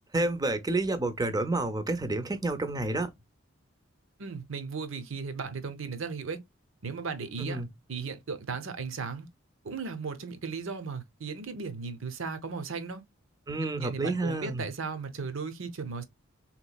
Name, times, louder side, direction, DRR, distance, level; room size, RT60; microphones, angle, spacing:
voice 1, 0.1-3.1 7.4-7.7 13.5-14.6, right 2 dB, 20° right, 0.5 m, -29 dB
voice 2, 4.2-6.4 6.8-7.6 7.9-9.3 9.6-13.0 13.6-16.0, right 5 dB, 70° right, 0.7 m, -36 dB
3.6 x 3.1 x 2.2 m
head